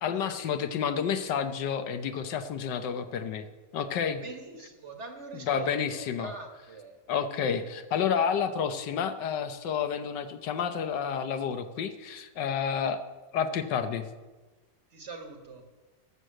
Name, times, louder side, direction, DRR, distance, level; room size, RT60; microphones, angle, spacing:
voice 1, 0.0-3.5 3.7-4.2 5.3-6.3 7.1-13.0 13.3-14.1, left 7 dB, 80° left, 9 dB, 1.5 m, -30 dB
voice 2, 4.2-7.0 14.9-15.6, right 4 dB, 45° right, 5 dB, 1.5 m, -43 dB
13.5 x 6.5 x 7.6 m, 1.2 s
omnidirectional pair, 1.9 m